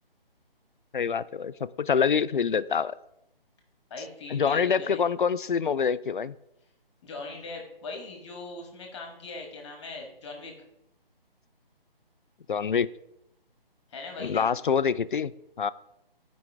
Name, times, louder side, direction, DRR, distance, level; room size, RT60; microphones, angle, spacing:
voice 1, 0.9-2.9 4.3-6.3 12.5-12.9 14.2-15.3 15.6-15.7, left 6 dB, 60° left, 16 dB, 0.4 m, -26 dB
voice 2, 3.9-5.0 7.0-10.5 13.9-14.5, left 3 dB, 30° left, 2 dB, 1.7 m, -40 dB
13.5 x 5.2 x 3.5 m, 0.83 s
figure-of-eight pair, 145°, 30 cm